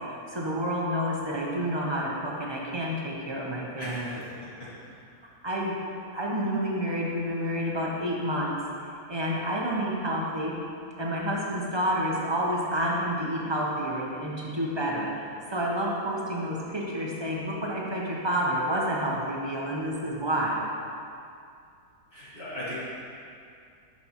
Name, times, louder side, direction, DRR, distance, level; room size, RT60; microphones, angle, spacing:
voice 1, 0.0-4.2 5.4-5.8 6.1-10.5 11.0-20.6, equal, 45° right, -4 dB, 0.3 m, -29 dB
voice 2, 3.8-5.0 22.1-22.7, equal, 35° left, -10 dB, 2.2 m, -39 dB
9.8 x 5.9 x 2.9 m, 2.4 s
omnidirectional pair, 1.8 m